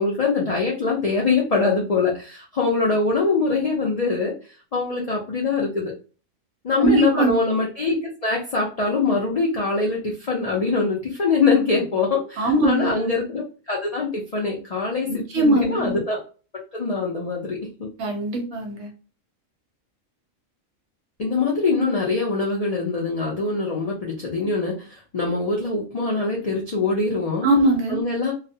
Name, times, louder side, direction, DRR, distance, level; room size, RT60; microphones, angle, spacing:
voice 1, 0.0-4.3 4.7-5.9 6.6-8.0 8.2-16.2 16.7-17.9 21.2-27.5 27.9-28.3, left 4 dB, 80° left, -3 dB, 0.3 m, -23 dB
voice 2, 6.8-7.3 12.4-13.0 15.1-16.0 18.0-18.9 27.4-28.0, right 2 dB, 65° right, 2 dB, 0.8 m, -21 dB
2.3 x 2.1 x 2.7 m, 0.36 s
omnidirectional pair, 1.4 m